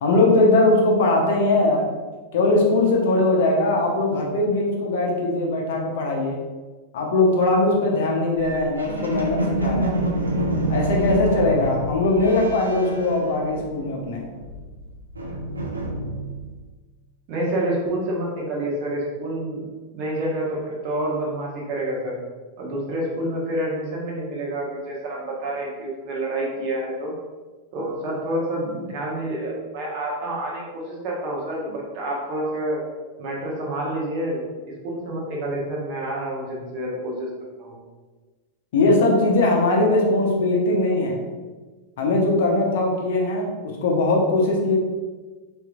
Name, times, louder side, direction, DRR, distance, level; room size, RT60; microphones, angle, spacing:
voice 1, 0.0-1.9 2.3-6.4 6.9-9.9 10.7-14.2 38.7-41.2 42.0-43.5 43.8-44.7, left 2 dB, 55° left, -1 dB, 0.8 m, -20 dB
sound 1, 8.4-14.0 14.3-16.5, right 1 dB, 80° right, 0.6 m, -27 dB
voice 2, 17.3-19.6 19.9-22.1 22.6-27.1 27.7-32.8 33.2-37.3 37.6-37.8, right 1 dB, 45° right, -3 dB, 1.2 m, -28 dB
4.5 x 3.4 x 2.4 m, 1.3 s
figure-of-eight pair, 90°, 0 cm